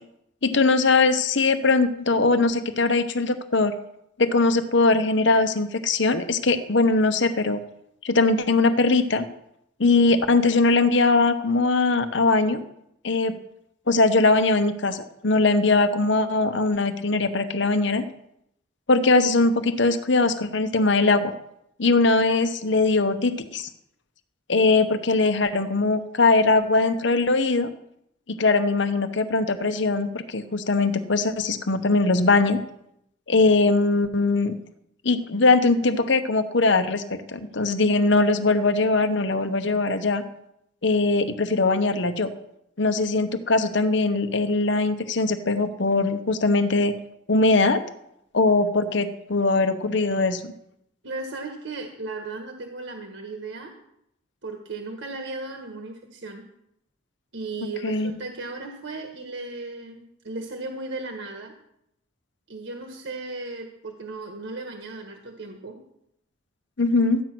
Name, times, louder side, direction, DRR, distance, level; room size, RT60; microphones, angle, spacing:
voice 1, 0.4-3.7 4.2-7.6 8.0-9.3 9.8-12.6 13.0-13.4 13.9-18.0 18.9-21.3 21.8-23.7 24.5-27.7 28.3-32.6 33.3-34.5 35.0-40.2 40.8-42.3 42.8-46.9 47.3-47.8 48.3-50.4 57.8-58.1 66.8-67.2, left 3 dB, 60° left, 9 dB, 0.9 m, -21 dB
voice 2, 51.0-53.7 54.4-56.4 57.3-61.5 62.5-65.8, right 3 dB, 65° right, 3 dB, 1.5 m, -36 dB
13.5 x 9.2 x 6.1 m, 0.78 s
head